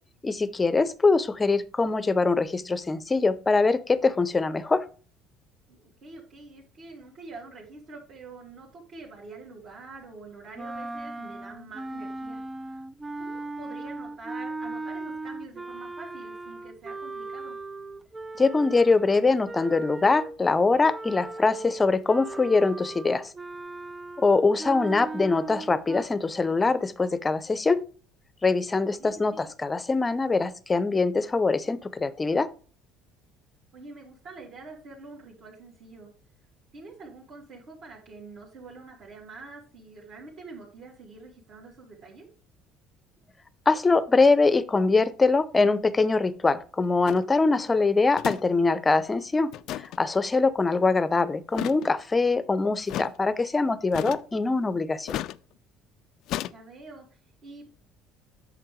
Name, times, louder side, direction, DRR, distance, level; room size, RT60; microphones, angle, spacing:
voice 1, 0.2-4.9 18.4-23.3 24.2-27.8 28.4-32.5 43.7-55.1, left 3 dB, 20° left, 15 dB, 0.7 m, -23 dB
voice 2, 5.7-12.8 13.2-17.6 24.4-24.8 29.0-29.5 33.7-36.1 36.7-42.2 56.5-57.6, right 3 dB, 55° right, -5 dB, 3.0 m, -46 dB
sound 1, 10.5-20.4 20.8-26.0, right 2 dB, 15° right, 0.4 m, -38 dB
sound 2, 47.1-47.2 48.2-48.4 48.7-48.8 49.5-50.0 51.5-51.9 52.9-53.1 53.9-54.4 55.1-55.4 56.3-56.5, left 13 dB, 65° left, 0.4 m, -33 dB
8.9 x 6.5 x 3.2 m, 0.39 s
cardioid pair, 120°, 0 cm